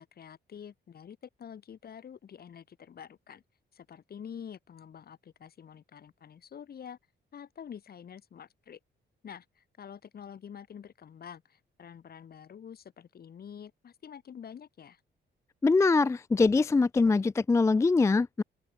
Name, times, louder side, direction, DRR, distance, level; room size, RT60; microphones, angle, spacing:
voice 1, 0.0-3.4 3.7-7.0 7.3-8.8 9.2-15.0, left 8 dB, 55° left, 3.5 m, -47 dB
voice 2, 15.6-18.4, left 3 dB, 15° left, 0.3 m, -23 dB
open air
cardioid pair, 120°, 20 cm